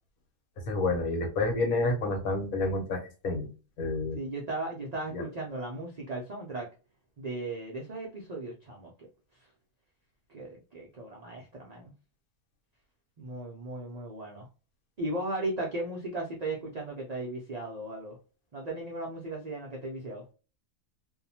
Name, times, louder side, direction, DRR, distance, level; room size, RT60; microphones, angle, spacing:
voice 1, 0.7-3.5 3.8-4.2 5.1-5.2, left 2 dB, 90° left, 3 dB, 1.3 m, -29 dB
voice 2, 4.2-6.7 7.2-8.9 10.3-11.9 13.2-14.5 15.0-18.2 18.5-20.2, right 2 dB, 85° right, -2 dB, 0.3 m, -36 dB
2.6 x 2.1 x 2.7 m, 0.34 s
omnidirectional pair, 1.5 m